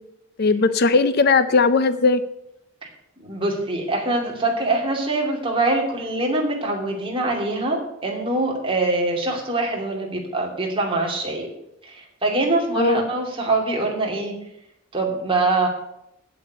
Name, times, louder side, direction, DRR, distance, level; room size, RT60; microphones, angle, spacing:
voice 1, 0.4-2.2 12.8-13.1, left 4 dB, 50° left, 13 dB, 0.5 m, -18 dB
voice 2, 3.2-11.5 11.8-14.3 14.9-15.7, right 2 dB, 25° right, 0 dB, 2.7 m, -24 dB
8.8 x 7.9 x 8.2 m, 0.81 s
head